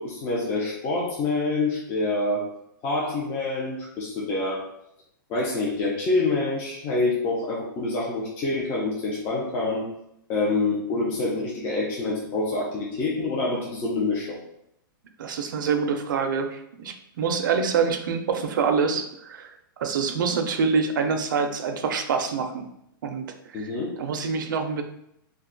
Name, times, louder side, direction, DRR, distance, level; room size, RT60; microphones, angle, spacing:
voice 1, 0.0-2.5 2.8-4.7 5.3-9.9 10.3-14.4 23.5-24.0, left 2 dB, 20° left, -5 dB, 0.4 m, -26 dB
voice 2, 15.2-19.5 19.8-22.6 23.0-23.3 23.6-23.7 24.0-24.8, right 5 dB, 65° right, 6 dB, 0.5 m, -26 dB
2.5 x 2.2 x 3.7 m, 0.77 s
hypercardioid pair, 170°, 12 cm